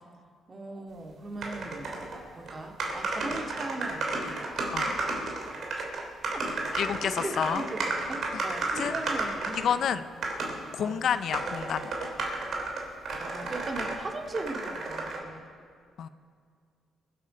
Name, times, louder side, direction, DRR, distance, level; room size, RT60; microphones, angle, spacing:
voice 1, 0.5-2.0 2.3-4.4 5.8-5.9 6.3-6.5 7.1-10.1 10.8-11.1 13.2-15.4, right 2 dB, 30° right, 2 dB, 2.1 m, -38 dB
sound 1, 1.4-2.2 2.5-2.6 2.8-9.7 10.2-10.6 11.1-14.0 14.3-15.2, right 3 dB, 60° right, 3.0 m, -32 dB
voice 2, 6.7-7.7 8.3-8.5 8.7-9.0 9.5-10.0 10.7-11.9 16.0-16.1, left 8 dB, 65° left, 13 dB, 0.5 m, -29 dB
24.5 x 8.3 x 5.1 m, 2.1 s
cardioid pair, 90°, 0 cm